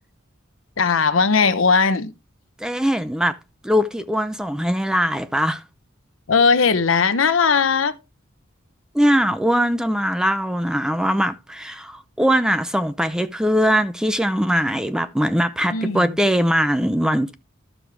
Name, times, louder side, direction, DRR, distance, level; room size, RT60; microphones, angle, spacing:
voice 1, 0.8-2.1 6.3-7.9 15.7-16.2, left 5 dB, 75° left, 0.8 m, -18 dB
voice 2, 2.6-3.3 3.6-5.6 8.9-17.3, equal, 5° right, 0.5 m, -21 dB
12.0 x 6.2 x 3.4 m
head